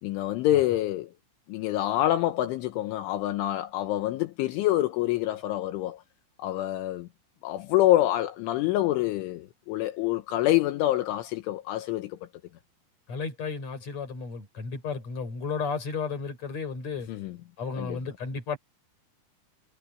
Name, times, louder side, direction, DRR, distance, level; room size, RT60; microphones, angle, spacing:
voice 1, 0.0-1.1 1.5-6.0 6.4-7.1 7.4-12.3 17.1-17.4 17.7-18.0, left 14 dB, 80° left, 3.4 m, -26 dB
voice 2, 13.1-17.1 17.6-18.6, left 5 dB, 35° left, 6.1 m, -33 dB
omnidirectional pair, 5.8 m